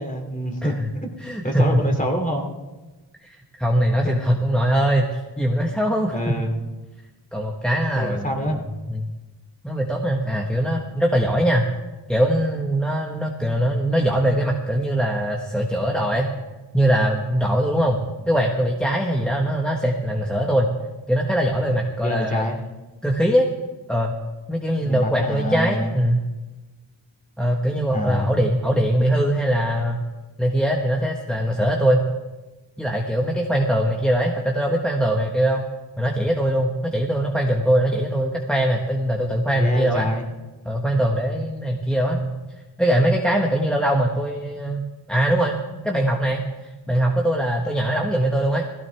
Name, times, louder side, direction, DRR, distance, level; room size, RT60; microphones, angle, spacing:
voice 1, 0.0-0.7 1.0-1.1 1.4-2.5 4.0-4.2 6.1-6.7 7.9-8.6 22.0-22.6 24.8-25.9 27.9-28.3 39.6-40.2, equal, 20° left, 1 dB, 3.0 m, -26 dB
voice 2, 1.2-1.8 3.2-6.3 7.3-8.6 8.9-9.1 9.6-11.7 12.1-16.3 16.7-18.0 18.3-20.7 21.1-22.4 23.0-23.5 23.9-24.2 24.5-26.2 27.4-30.0 30.4-32.0 32.8-35.7 36.0-40.1 40.6-42.3 42.8-44.8 45.1-45.6 45.8-48.6, right 1 dB, ahead, 1 dB, 1.5 m, -21 dB
17.0 x 16.0 x 3.6 m, 1.1 s
cardioid pair, 50°, 44 cm